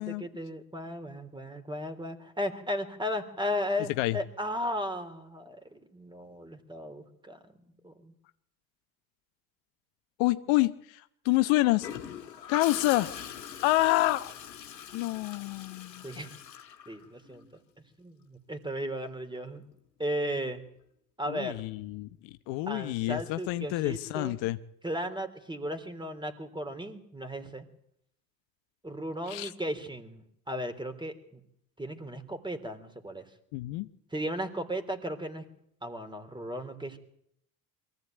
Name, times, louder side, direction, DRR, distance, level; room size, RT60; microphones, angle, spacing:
voice 1, 0.0-7.4 7.8-8.1 16.0-16.3 16.9-17.5 18.0-19.6 20.0-20.6 21.2-21.6 22.7-24.4 24.8-27.7 28.8-31.4 31.8-33.3 34.1-35.5 35.8-37.0, equal, 10° right, 9 dB, 3.4 m, -35 dB
voice 2, 10.2-11.9 12.5-13.1 13.6-14.3 14.9-16.1 21.3-24.6 29.3-29.5 33.5-33.9, left 18 dB, 60° left, 11 dB, 1.0 m, -28 dB
Gurgling / Toilet flush, 11.8-17.5 19.5-19.8, left 9 dB, 90° left, 1.8 m, -42 dB
23.0 x 15.0 x 9.2 m, 0.74 s
hypercardioid pair, 65°, 49 cm